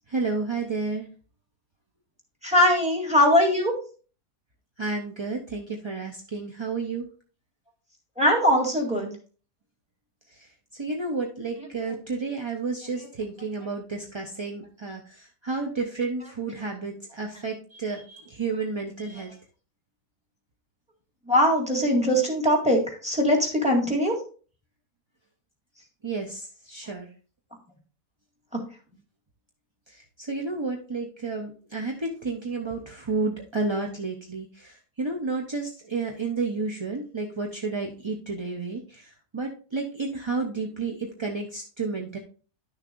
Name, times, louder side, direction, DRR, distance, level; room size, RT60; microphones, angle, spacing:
voice 1, 0.1-1.1 4.8-7.0 10.3-10.5 10.7-19.4 26.0-27.1 29.9-42.2, right 3 dB, 30° right, 1 dB, 0.5 m, -31 dB
voice 2, 2.4-3.7 8.2-9.1 21.3-24.2 28.5-28.6, equal, 5° right, 0 dB, 1.9 m, -21 dB
11.0 x 6.5 x 2.6 m, 0.39 s
omnidirectional pair, 1.5 m